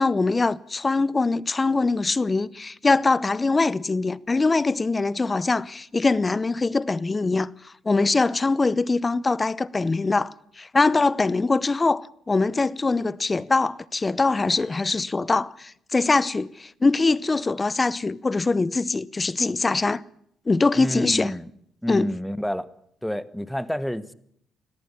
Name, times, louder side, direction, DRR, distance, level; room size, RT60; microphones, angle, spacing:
voice 1, 0.0-7.5 7.8-20.0 20.5-21.3 21.9-22.1, left 3 dB, 25° left, 0.8 m, -23 dB
voice 2, 20.7-21.5 21.8-22.6 23.0-24.1, equal, 5° left, 1.3 m, -28 dB
21.5 x 14.0 x 9.9 m
cardioid pair, 90°, 0 cm